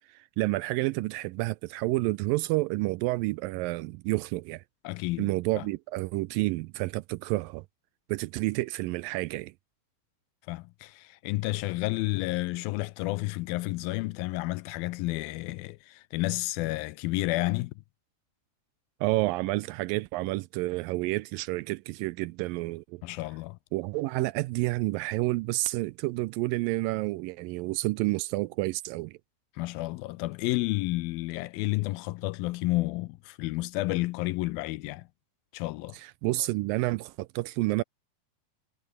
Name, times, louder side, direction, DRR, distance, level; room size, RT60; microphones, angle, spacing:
voice 1, 0.1-4.6 5.2-7.7 8.1-9.5 19.0-23.0 23.7-29.2 35.9-37.8, right 20 dB, 80° right, 2.1 m, -29 dB
voice 2, 4.8-5.6 10.5-17.7 23.0-23.6 29.6-35.1 35.5-36.0, left 20 dB, 80° left, 2.3 m, -31 dB
omnidirectional pair, 4.4 m